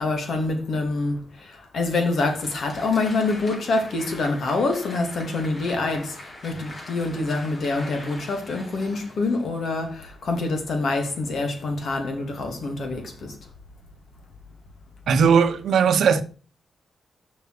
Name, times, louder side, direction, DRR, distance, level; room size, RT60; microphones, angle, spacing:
voice 1, 0.0-13.4, left 3 dB, 75° left, 2.4 m, -26 dB
Applause, 1.8-9.9, left 1 dB, 45° left, 4.0 m, -43 dB
voice 2, 15.1-16.2, right 6 dB, 85° right, 0.8 m, -18 dB
6.9 x 5.5 x 6.6 m
cardioid pair, 85°, 0 cm